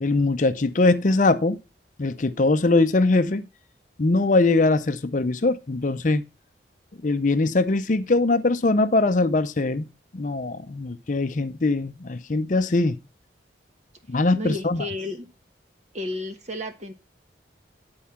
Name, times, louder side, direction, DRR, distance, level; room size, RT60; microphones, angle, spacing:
voice 1, 0.0-1.6 2.0-3.5 4.0-6.2 7.0-9.9 10.1-13.0 14.1-14.9, left 2 dB, 45° left, 0.6 m, -21 dB
voice 2, 14.4-15.3 15.9-16.9, left 1 dB, 40° right, 1.3 m, -32 dB
10.5 x 4.6 x 5.7 m
head